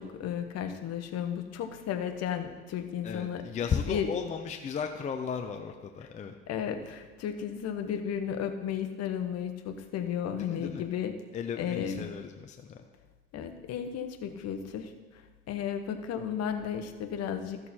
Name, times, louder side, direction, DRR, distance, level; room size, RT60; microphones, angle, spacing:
voice 1, 0.0-4.2 6.0-6.1 6.5-11.1 11.6-12.1 13.3-14.9 15.5-17.6, left 8 dB, 50° left, 7 dB, 1.0 m, -34 dB
voice 2, 3.0-6.4 10.3-10.9 11.3-12.8, left 7 dB, 20° left, 5 dB, 0.5 m, -35 dB
13.5 x 6.5 x 4.3 m, 1.4 s
cardioid pair, 140°, 32 cm